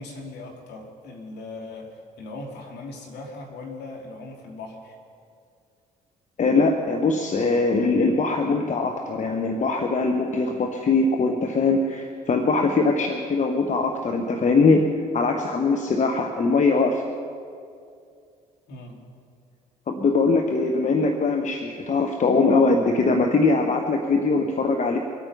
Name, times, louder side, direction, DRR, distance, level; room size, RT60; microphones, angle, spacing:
voice 1, 0.0-5.0 18.7-19.0, left 2 dB, 60° left, 1 dB, 2.8 m, -39 dB
voice 2, 6.4-14.9 15.1-17.0 19.9-25.0, left 3 dB, 40° left, 4 dB, 1.2 m, -21 dB
24.5 x 8.9 x 5.6 m, 2.3 s
figure-of-eight pair, 50°, 20 cm